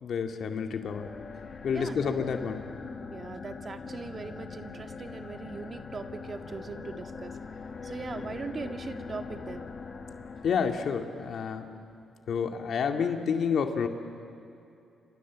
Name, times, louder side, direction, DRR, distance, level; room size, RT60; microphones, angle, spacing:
voice 1, 0.0-1.1 1.6-2.6 10.4-11.7 12.3-13.9, left 6 dB, 65° left, 5 dB, 2.2 m, -29 dB
sound 1, 0.8-11.3, left 5 dB, 45° left, 2.4 m, -42 dB
voice 2, 1.7-2.2 3.1-7.4 7.8-9.7, right 4 dB, 40° right, 6 dB, 1.9 m, -40 dB
30.0 x 26.5 x 7.5 m, 2.6 s
cardioid pair, 75°, 0 cm